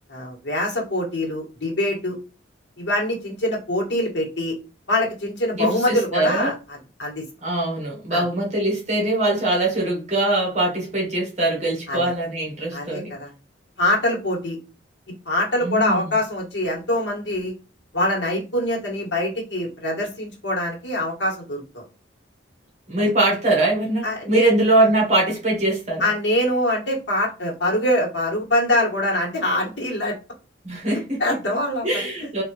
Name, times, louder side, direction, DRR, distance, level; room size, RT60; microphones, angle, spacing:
voice 1, 0.1-2.2 2.8-4.6 4.9-7.2 8.1-8.2 11.9-12.1 12.7-13.3 13.8-14.6 15.3-17.5 17.9-21.8 24.0-24.5 26.0-30.2 30.9-31.9, left 1 dB, 65° left, 1.6 m, -24 dB
voice 2, 5.6-6.5 7.4-13.1 15.6-16.0 22.9-26.1 30.6-31.2 31.8-32.4, right 1 dB, 35° right, 1.5 m, -22 dB
3.8 x 2.9 x 3.1 m
head